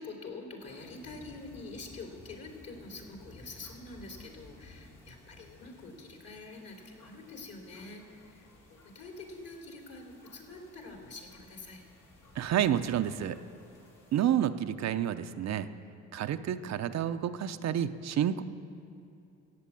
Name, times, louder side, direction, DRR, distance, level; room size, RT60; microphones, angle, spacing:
voice 1, 0.0-11.8, left 3 dB, 55° left, 1 dB, 3.1 m, -46 dB
sound 1, 0.6-14.4, left 1 dB, 80° left, 3.4 m, -56 dB
voice 2, 12.4-13.4 14.1-15.7 16.1-18.4, right 10 dB, 60° right, 9 dB, 0.7 m, -29 dB
14.5 x 8.3 x 8.5 m, 2.6 s
cardioid pair, 90°, 30 cm